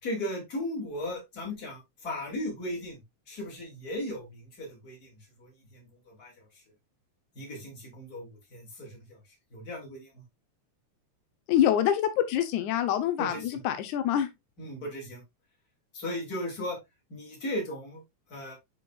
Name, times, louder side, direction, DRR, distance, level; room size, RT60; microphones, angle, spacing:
voice 1, 0.0-3.0 3.3-6.3 7.3-9.2 9.5-10.2 13.2-13.6 14.6-15.2 15.9-16.8 17.1-18.0 18.3-18.5, left 1 dB, 30° left, 3.1 m, -37 dB
voice 2, 11.5-13.3 13.6-14.3, left 10 dB, 90° left, 2.3 m, -25 dB
9.5 x 4.8 x 2.4 m
omnidirectional pair, 3.3 m